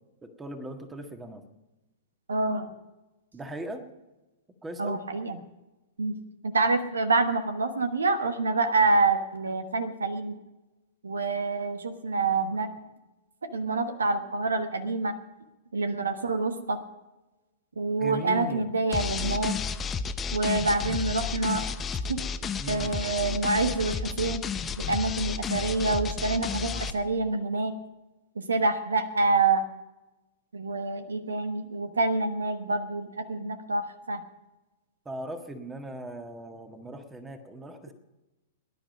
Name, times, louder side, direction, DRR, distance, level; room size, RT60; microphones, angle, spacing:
voice 1, 0.2-1.5 3.3-3.8 4.6-5.0 18.0-18.7 22.6-22.9 35.0-37.9, right 1 dB, 10° right, 7 dB, 1.6 m, -39 dB
voice 2, 2.3-2.7 4.8-5.4 6.0-6.2 6.4-10.4 11.0-12.7 13.5-15.1 15.7-16.8 17.8-19.6 20.3-21.6 22.1-22.2 22.7-24.4 24.8-27.8 28.3-29.6 30.5-34.2, right 3 dB, 75° right, 9 dB, 1.2 m, -27 dB
sound 1, 18.9-26.9, left 6 dB, 20° left, 0.8 m, -32 dB
18.0 x 11.0 x 5.2 m, 1.0 s
figure-of-eight pair, 105°, 0 cm